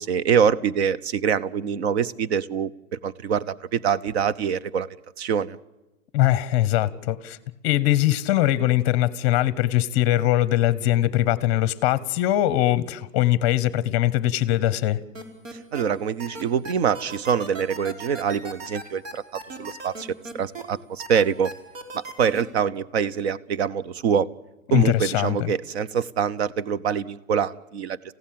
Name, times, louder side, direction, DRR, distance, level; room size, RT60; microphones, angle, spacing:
voice 1, 0.0-4.9 5.2-5.6 15.7-20.1 20.3-21.5 21.9-24.3 24.7-28.0, right 7 dB, 55° right, 17 dB, 1.0 m, -25 dB
voice 2, 6.1-7.4 7.6-15.0 24.7-25.5, left 14 dB, 20° left, 17 dB, 0.8 m, -21 dB
sound 1, 15.1-15.8 16.2-20.6 21.0-22.4, right 3 dB, 70° right, 5.1 m, -37 dB
29.0 x 16.0 x 7.6 m, 1.0 s
hypercardioid pair, 170°, 39 cm